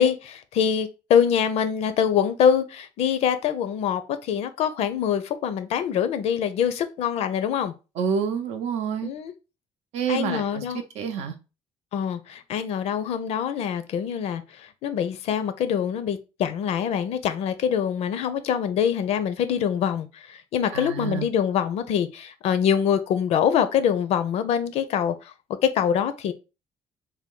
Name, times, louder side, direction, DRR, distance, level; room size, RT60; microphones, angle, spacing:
voice 1, 0.0-7.7 9.0-9.3 10.1-10.8 11.9-14.4 14.8-25.1 25.6-26.3, left 8 dB, 75° left, 0.5 m, -24 dB
voice 2, 8.0-9.1 9.9-10.6 11.0-11.4 20.7-21.3, right 7 dB, 90° right, 0.6 m, -28 dB
3.4 x 2.2 x 3.6 m
cardioid pair, 120°, 11 cm